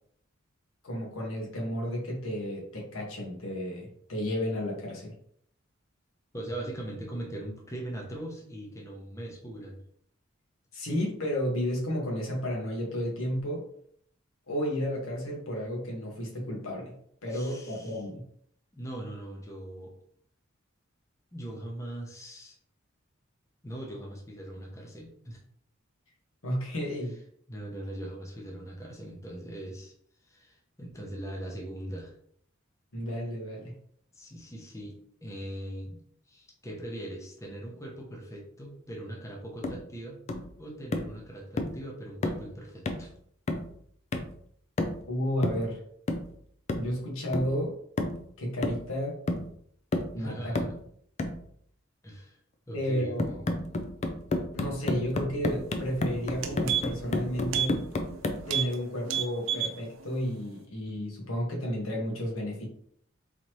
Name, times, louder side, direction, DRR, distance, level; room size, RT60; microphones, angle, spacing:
voice 1, 0.8-5.1 10.7-13.6 14.5-16.9 17.2-18.2 26.4-27.1 32.9-33.7 45.1-45.8 46.8-47.7 48.4-49.2 50.1-50.5 52.7-53.2 54.5-57.8 58.5-62.7, equal, 85° left, -2 dB, 1.4 m, -32 dB
voice 2, 6.3-9.8 17.3-18.0 18.7-19.9 21.3-22.5 23.6-25.4 27.5-29.9 30.2-32.1 34.1-35.0 35.2-36.0 36.3-40.2 40.6-43.1 50.2-50.8 52.0-52.4 52.7-53.6, right 1 dB, 15° left, -1 dB, 0.8 m, -40 dB
sound 1, 39.6-39.9 40.3-40.5 40.9-41.2 41.6-41.8 42.2-42.5 42.9-43.1 43.5-43.8 44.1-44.4 44.8-45.1 45.4-45.7 46.1-46.3 46.7-46.9 47.3-47.6 48.0-48.2 48.6-49.0 49.3-49.5 49.9-50.2 50.6-50.8 51.2-51.4 53.2-58.5, left 2 dB, 35° left, 0.4 m, -31 dB
sound 2, 55.8-55.9 56.2-57.1 57.5-57.7 58.0-58.2 58.5-58.7 59.0-59.8 60.1-60.2, right 9 dB, 70° right, 0.6 m, -30 dB
4.0 x 2.9 x 3.1 m, 0.66 s
head